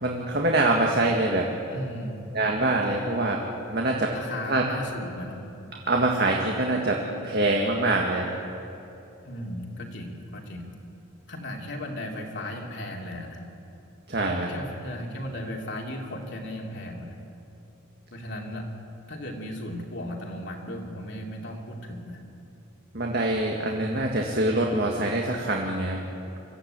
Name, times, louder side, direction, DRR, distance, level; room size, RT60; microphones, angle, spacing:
voice 1, 0.0-1.5 2.3-3.4 3.7-4.1 4.5-4.6 5.9-8.3 14.1-14.5 22.9-26.0, right 2 dB, 50° right, 0 dB, 1.8 m, -24 dB
voice 2, 1.7-2.2 2.8-3.1 4.1-5.4 9.2-10.7 11.3-13.4 14.5-17.2 18.1-18.7 19.1-22.2, left 1 dB, 55° left, 0 dB, 2.7 m, -36 dB
24.5 x 15.0 x 8.9 m, 2.9 s
head